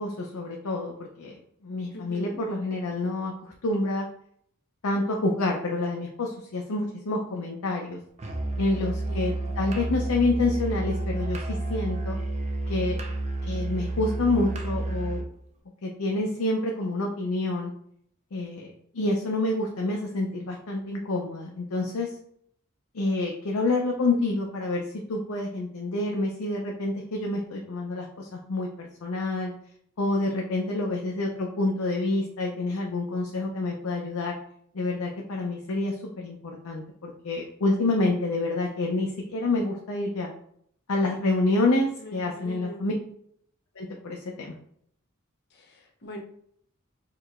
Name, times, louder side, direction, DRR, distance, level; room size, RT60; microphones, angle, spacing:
voice 1, 0.0-1.3 1.6-3.3 3.6-4.1 4.8-8.0 8.6-12.2 12.7-13.0 13.5-15.2 15.8-17.7 18.3-22.1 22.9-24.8 25.1-29.5 30.0-34.4 34.7-40.3 40.9-42.9 43.8-44.5, left 2 dB, 85° left, 0 dB, 0.5 m, -28 dB
voice 2, 1.9-2.4 8.7-9.7 42.0-42.9 45.5-46.2, left 1 dB, 50° left, 1 dB, 0.7 m, -42 dB
Musical instrument, 8.2-15.3, right 2 dB, 30° right, 0.5 m, -30 dB
4.6 x 2.9 x 2.4 m, 0.67 s
head